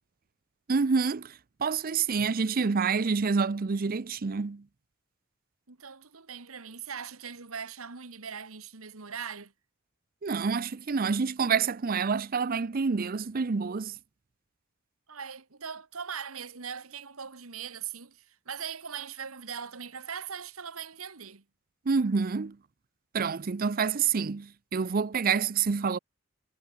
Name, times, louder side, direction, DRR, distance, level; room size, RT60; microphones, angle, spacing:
voice 1, 0.7-1.3 1.6-4.6 10.2-13.9 21.9-22.6 23.1-26.0, right 5 dB, 45° right, 0.5 m, -27 dB
voice 2, 5.7-9.5 15.1-21.4, right 7 dB, 80° right, 1.8 m, -40 dB
head